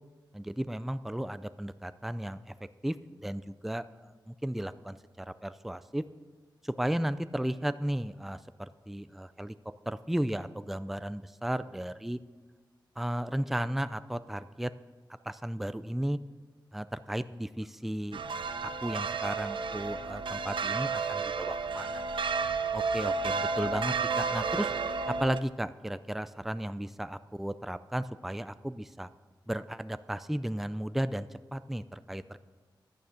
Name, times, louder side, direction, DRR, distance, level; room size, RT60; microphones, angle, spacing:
voice 1, 0.3-2.5 2.8-3.0 3.2-6.0 6.6-9.5 9.9-12.2 13.0-14.7 15.2-16.2 16.7-18.2 18.6-22.2 22.7-24.7 25.1-29.1 29.5-32.4, right 1 dB, 5° right, 14 dB, 0.4 m, -34 dB
sound 1, 18.1-25.4, right 4 dB, 85° right, 0.6 m, -32 dB
11.0 x 9.1 x 5.7 m, 1.4 s
wide cardioid pair, 85°, 8 cm